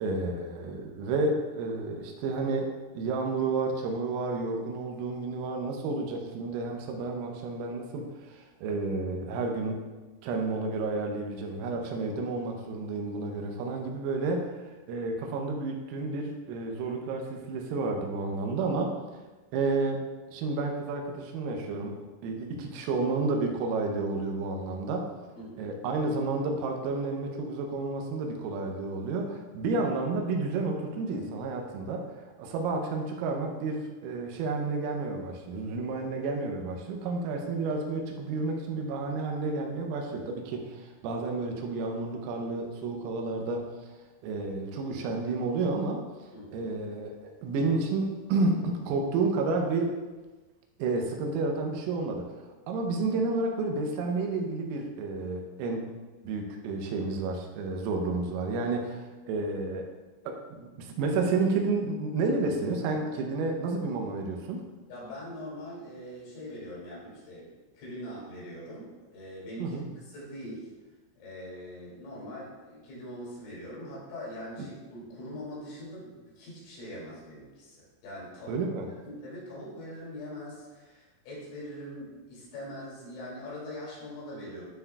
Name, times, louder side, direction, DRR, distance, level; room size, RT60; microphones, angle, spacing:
voice 1, 0.0-2.7 3.0-9.8 10.2-14.6 14.9-19.1 19.5-20.0 20.3-22.0 22.2-25.2 25.6-32.1 32.4-43.9 44.2-46.1 46.5-50.0 50.8-52.3 52.7-55.9 56.3-59.9 60.3-64.7 69.6-69.9 78.5-78.9, right 3 dB, 85° right, 2 dB, 3.5 m, -31 dB
voice 2, 46.3-46.7 64.9-70.7 71.1-78.6 79.1-84.6, equal, 75° left, -7 dB, 5.1 m, -42 dB
13.0 x 4.8 x 2.3 m, 1.2 s
omnidirectional pair, 6.0 m